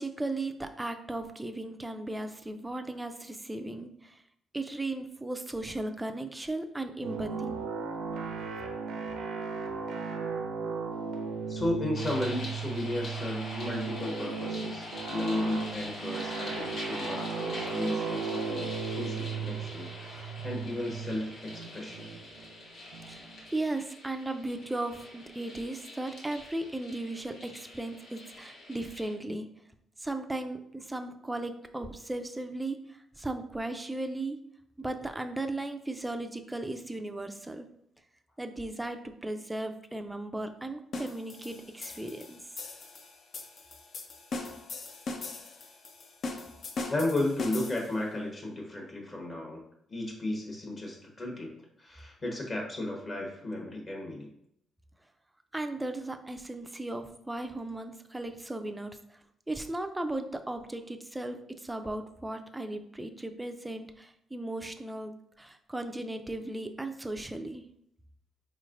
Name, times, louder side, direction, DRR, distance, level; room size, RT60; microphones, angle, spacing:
voice 1, 0.0-4.2 4.5-7.6 23.1-29.5 30.0-34.4 34.8-37.7 38.4-42.4 55.5-59.2 59.5-67.6, right 2 dB, 10° right, 6 dB, 0.4 m, -36 dB
sound 1, 7.0-23.5, right 5 dB, 80° right, 0.6 m, -36 dB
voice 2, 11.5-22.1 46.9-49.6 49.9-51.5 51.8-54.3, left 1 dB, 40° left, 0 dB, 1.1 m, -34 dB
sound 2, 11.9-29.1, left 2 dB, 75° left, 1.1 m, -43 dB
sound 3, 40.9-48.0, left 3 dB, 55° left, 0.5 m, -40 dB
4.2 x 3.1 x 2.5 m, 0.72 s
cardioid pair, 90°, 0 cm